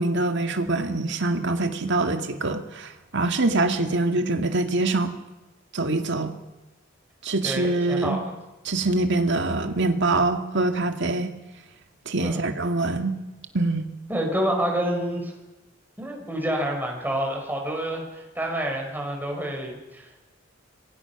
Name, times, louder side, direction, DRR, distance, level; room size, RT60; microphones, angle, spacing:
voice 1, 0.0-5.1 5.7-6.3 7.2-8.2 8.6-11.3 12.1-13.2 13.5-13.9, right 2 dB, 60° right, 6 dB, 2.1 m, -24 dB
voice 2, 7.4-8.3 12.2-12.4 14.1-15.3 16.0-20.2, right 1 dB, 10° right, 1 dB, 5.5 m, -28 dB
27.0 x 22.5 x 6.0 m, 1.1 s
head